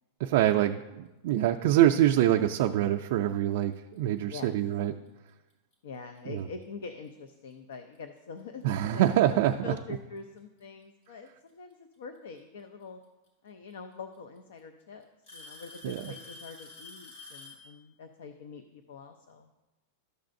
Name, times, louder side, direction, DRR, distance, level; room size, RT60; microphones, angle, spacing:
voice 1, 0.2-4.9 6.3-6.5 8.6-9.7 15.8-16.0, right 12 dB, 55° right, 3 dB, 0.3 m, -25 dB
Alarm / Tick-tock, 3.7-4.0 4.8-4.9 5.7-5.8 7.5-7.6 8.8-8.9 10.2-10.6 12.4-12.5 13.7-13.8 14.1-14.6 15.3-17.7, left 3 dB, 65° left, 3.1 m, -48 dB
voice 2, 4.2-4.6 5.8-9.0 9.6-13.0 13.4-15.0 15.3-19.5, left 5 dB, 85° left, 8 dB, 0.5 m, -44 dB
12.0 x 6.5 x 2.6 m, 1.1 s
supercardioid pair, 165°, 0 cm